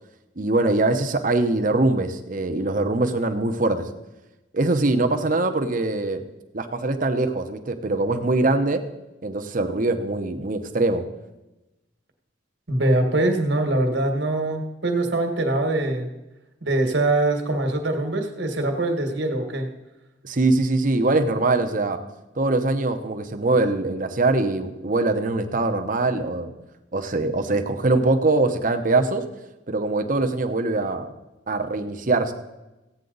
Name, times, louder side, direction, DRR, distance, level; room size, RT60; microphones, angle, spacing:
voice 1, 0.4-3.9 4.5-6.2 6.5-8.8 9.2-11.0 20.2-22.0 22.4-26.5 26.9-29.2 29.7-31.1 31.5-32.3, right 2 dB, 45° right, 6 dB, 0.9 m, -22 dB
voice 2, 12.7-16.1 16.6-19.7, right 2 dB, 70° right, 4 dB, 1.6 m, -23 dB
15.5 x 9.0 x 4.0 m, 1.0 s
head